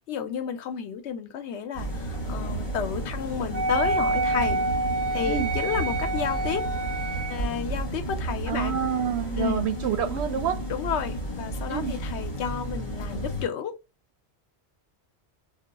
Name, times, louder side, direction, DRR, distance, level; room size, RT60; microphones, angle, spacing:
voice 1, 0.1-4.6 5.1-6.6 7.3-8.7 9.3-9.7 10.7-13.7, left 7 dB, 85° left, 0.9 m, -31 dB
sound 1, 1.7-13.5, right 1 dB, 45° left, 1.1 m, -32 dB
Wind instrument woodwind instrument, 3.5-7.4, right 2 dB, 40° right, 0.3 m, -27 dB
voice 2, 8.5-10.6 11.7-11.9, right 9 dB, 75° right, 0.8 m, -28 dB
2.3 x 2.2 x 3.9 m
omnidirectional pair, 1.1 m